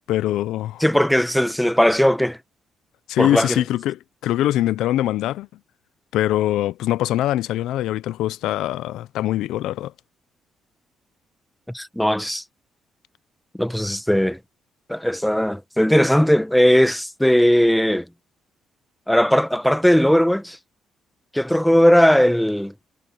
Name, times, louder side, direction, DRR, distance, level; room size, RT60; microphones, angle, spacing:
voice 1, 0.0-0.8 3.1-5.5 6.1-9.9, left 13 dB, 85° left, 0.6 m, -23 dB
voice 2, 0.8-2.4 3.2-3.6 11.7-12.4 13.6-14.4 14.9-18.1 19.1-20.6 21.3-22.7, equal, 5° left, 1.3 m, -18 dB
cardioid pair, 90°, 0 cm